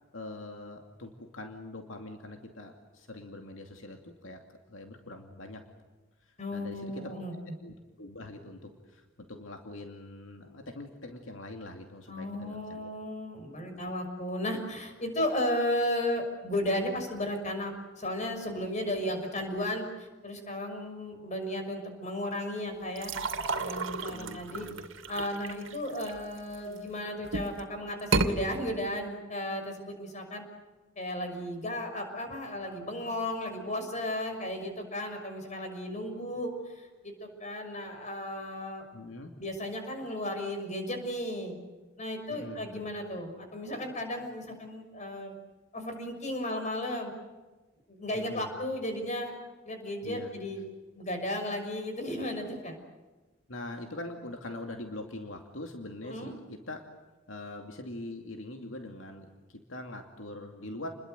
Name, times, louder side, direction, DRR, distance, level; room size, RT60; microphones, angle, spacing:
voice 1, 0.1-5.6 6.2-12.9 24.1-24.8 38.9-39.3 42.3-42.9 48.1-48.5 50.0-50.3 53.5-56.9 57.3-60.9, left 2 dB, 80° left, 4 dB, 2.6 m, -43 dB
voice 2, 6.4-7.3 12.1-23.1 23.5-24.7 25.1-30.4 31.0-38.8 39.4-41.6 42.0-45.3 45.7-47.1 47.9-49.3 49.7-50.6 50.9-52.8 56.0-56.3, left 1 dB, 40° left, 5 dB, 6.2 m, -34 dB
sound 1, 23.0-26.8 27.2-27.6 28.0-28.3, right 3 dB, 80° right, 2.5 m, -32 dB
30.0 x 21.5 x 8.1 m, 1.2 s
head